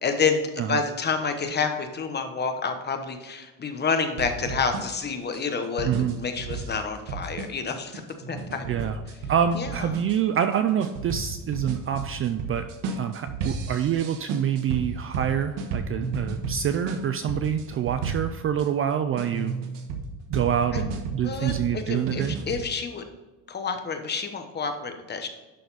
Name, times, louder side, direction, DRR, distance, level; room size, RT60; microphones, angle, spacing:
voice 1, 0.0-5.9 6.1-8.0 8.3-8.9 9.6-9.9 20.7-20.8 21.2-23.0 23.5-25.3, left 5 dB, 25° left, 6 dB, 1.0 m, -29 dB
sound 1, 4.2-18.7 19.2-22.6, right 4 dB, 85° right, 1.4 m, -33 dB
voice 2, 5.8-6.1 8.7-9.0 9.3-12.7 13.0-19.6 20.3-22.4, right 9 dB, 35° right, 9 dB, 0.4 m, -26 dB
11.5 x 4.1 x 4.1 m, 1.2 s
cardioid pair, 140°, 40 cm